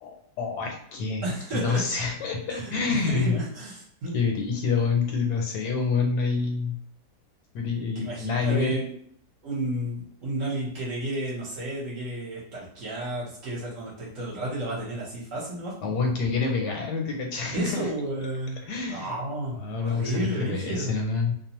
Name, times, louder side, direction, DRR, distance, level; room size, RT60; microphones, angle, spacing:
voice 1, 0.0-1.2 1.6-3.4 4.1-6.8 7.5-8.8 15.8-17.9 18.7-19.1 19.6-21.3, left 4 dB, 85° left, 2 dB, 1.2 m, -27 dB
voice 2, 1.2-1.9 2.5-4.2 7.9-8.9 9.4-16.0 17.5-20.9, right 1 dB, 55° right, -5 dB, 1.1 m, -32 dB
2.8 x 2.0 x 2.9 m, 0.62 s
omnidirectional pair, 1.7 m